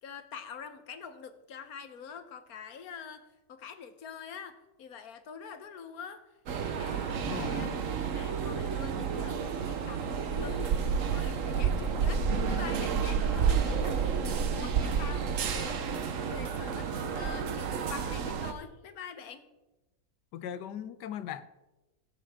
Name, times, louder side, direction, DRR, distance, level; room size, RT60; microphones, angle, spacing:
voice 1, 0.0-6.3 6.6-7.3 7.6-7.7 8.0-19.5, left 6 dB, 65° left, 1.3 m, -45 dB
sound 1, 6.5-18.5, right 6 dB, 55° right, 1.2 m, -30 dB
voice 2, 7.2-7.8 20.3-21.5, left 9 dB, 85° left, 1.3 m, -39 dB
21.5 x 7.6 x 3.6 m
omnidirectional pair, 1.8 m